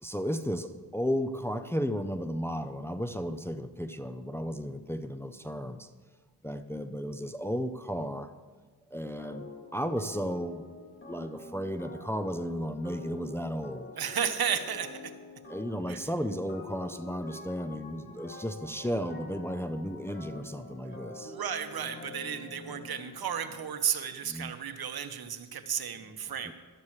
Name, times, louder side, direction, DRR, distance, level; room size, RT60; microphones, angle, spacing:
voice 1, 0.0-5.9 6.4-8.3 8.9-9.4 9.7-10.7 11.1-13.9 15.5-21.3 24.2-24.5 26.4-26.5, equal, 5° left, 7 dB, 0.6 m, -34 dB
sound 1, 9.2-23.8, left 2 dB, 30° left, 1.9 m, -47 dB
voice 2, 14.0-15.1 15.9-16.0 21.2-26.5, right 8 dB, 65° right, 8 dB, 1.1 m, -33 dB
16.0 x 12.5 x 3.2 m, 1.4 s
cardioid pair, 75°, 40 cm